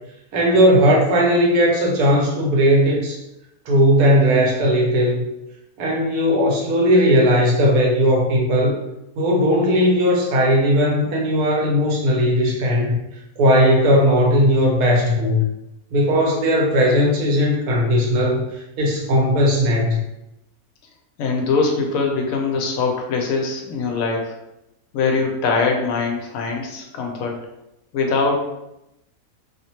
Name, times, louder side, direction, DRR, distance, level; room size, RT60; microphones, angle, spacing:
voice 1, 0.3-3.2 3.7-5.2 5.8-8.7 9.2-13.0 13.4-15.4 15.9-18.4 18.8-20.0, equal, 85° right, -1 dB, 1.3 m, -17 dB
voice 2, 21.2-24.3 24.9-27.4 27.9-28.4, left 4 dB, 75° left, 1 dB, 1.0 m, -22 dB
2.9 x 2.1 x 2.8 m, 0.88 s
omnidirectional pair, 1.6 m